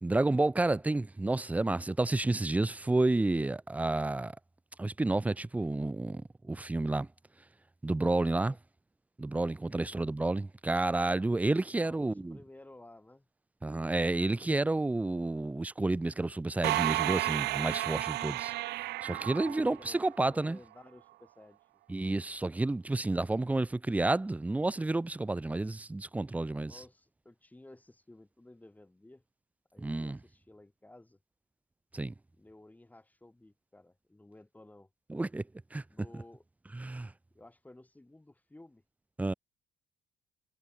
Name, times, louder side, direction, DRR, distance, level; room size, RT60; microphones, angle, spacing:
voice 1, 0.0-4.4 4.8-7.1 7.8-8.5 9.2-12.4 13.6-18.5 19.0-20.6 21.9-26.8 29.8-30.2 31.9-32.1 35.1-35.4 35.7-35.8 36.7-37.1 39.2-39.3, right 2 dB, 10° right, 0.5 m, -30 dB
voice 2, 9.7-10.1 11.8-13.2 18.8-21.6 23.2-23.3 26.6-29.2 29.7-31.2 32.3-34.9 35.9-36.4 37.3-38.8, left 2 dB, 10° left, 5.0 m, -55 dB
sound 1, 16.6-20.3, right 18 dB, 80° right, 0.9 m, -32 dB
cardioid pair, 110°, 17 cm